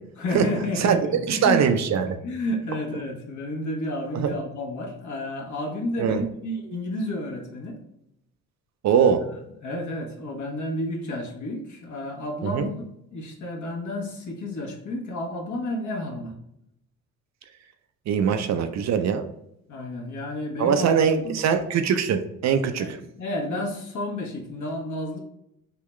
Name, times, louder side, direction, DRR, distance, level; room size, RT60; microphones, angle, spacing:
voice 1, 0.2-1.6 2.1-7.8 8.9-9.1 9.6-12.7 13.1-16.3 19.7-21.0 21.2-21.4 22.8-25.2, left 1 dB, 55° left, 1 dB, 1.1 m, -31 dB
voice 2, 1.3-2.1 4.1-4.3 6.0-6.2 8.8-9.2 12.4-12.7 18.1-19.2 20.6-23.0, right 7 dB, 50° right, 8 dB, 0.5 m, -22 dB
3.7 x 2.3 x 3.1 m, 0.77 s
supercardioid pair, 65°, 35 cm